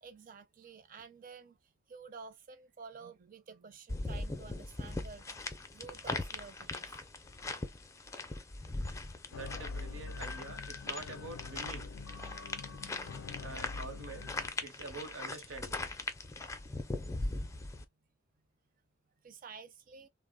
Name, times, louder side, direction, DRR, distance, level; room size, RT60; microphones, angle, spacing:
voice 1, 0.0-7.0 12.4-13.5 17.2-17.7 19.2-20.1, right 5 dB, 45° right, 0.5 m, -52 dB
sound 1, 3.9-17.8, left 2 dB, 15° left, 0.4 m, -40 dB
sound 2, 9.3-14.5, left 4 dB, 75° left, 0.4 m, -44 dB
voice 2, 9.3-11.9 13.4-14.3 14.6-15.8, right 3 dB, 75° right, 0.8 m, -46 dB
3.2 x 2.0 x 2.2 m
head